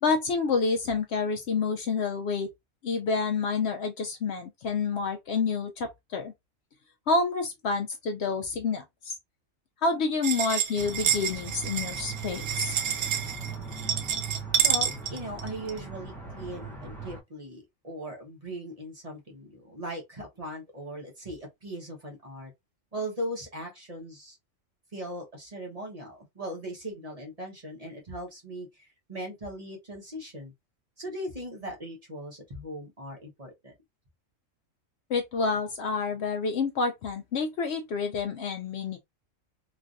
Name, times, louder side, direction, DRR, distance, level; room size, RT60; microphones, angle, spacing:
voice 1, 0.0-2.5 2.8-6.3 7.1-9.1 9.8-12.8 35.1-39.0, left 4 dB, 65° left, 0.7 m, -28 dB
sound 1, 10.2-15.8, right 9 dB, 75° right, 1.0 m, -29 dB
sound 2, 10.8-17.2, right 4 dB, ahead, 0.5 m, -39 dB
voice 2, 14.6-22.5 22.9-24.4 24.9-30.5 31.0-33.7, equal, 30° right, 1.0 m, -39 dB
3.1 x 2.5 x 2.5 m
omnidirectional pair, 1.3 m